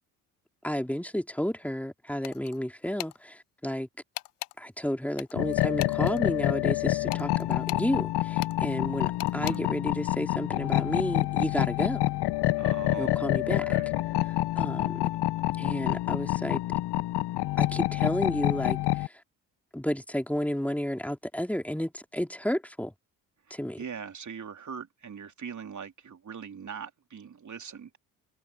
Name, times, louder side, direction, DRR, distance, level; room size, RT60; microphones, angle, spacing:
voice 1, 0.6-3.9 4.6-12.1 13.0-13.8 14.3-15.1 15.6-16.6 17.6-19.2 19.7-22.9 23.5-23.8, equal, 5° left, 3.4 m, -32 dB
sound 1, 2.2-2.6 3.0-3.2 4.2-4.6 5.2-6.2 7.1-7.9 8.4-8.6 9.2-9.6, left 17 dB, 85° left, 1.1 m, -39 dB
sound 2, 5.3-19.1, left 16 dB, 60° left, 1.4 m, -27 dB
voice 2, 9.3-9.7 12.5-13.9 23.5-28.0, right 6 dB, 40° right, 3.4 m, -41 dB
hypercardioid pair, 45°, 45 cm